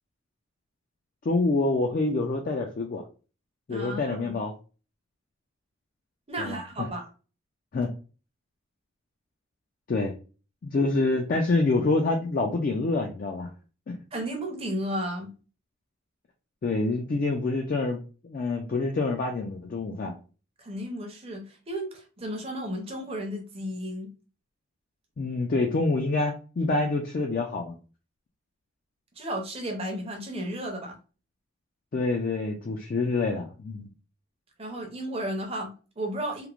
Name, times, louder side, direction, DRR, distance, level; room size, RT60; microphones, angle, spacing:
voice 1, 1.2-3.0 3.7-4.5 6.4-6.6 7.7-7.9 9.9-10.2 10.6-13.5 13.9-14.0 16.6-20.2 25.2-27.8 31.9-33.9, left 3 dB, 40° left, 1 dB, 0.3 m, -26 dB
voice 2, 3.7-4.4 6.3-7.1 14.1-15.3 20.6-24.1 29.2-31.0 34.6-36.5, right 1 dB, 30° right, 3 dB, 0.6 m, -33 dB
3.0 x 2.1 x 2.3 m, 0.35 s
head